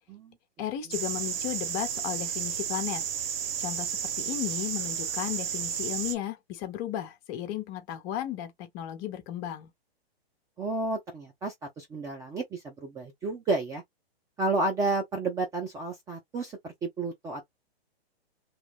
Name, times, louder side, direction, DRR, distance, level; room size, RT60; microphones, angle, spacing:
voice 1, 0.6-3.1 3.6-9.7, left 11 dB, 30° left, 0.8 m, -35 dB
sound 1, 0.9-6.2, right 8 dB, 65° right, 1.0 m, -32 dB
voice 2, 10.6-13.8 14.4-17.4, right 3 dB, 10° right, 0.5 m, -31 dB
3.1 x 2.3 x 3.4 m
hypercardioid pair, 140°, 31 cm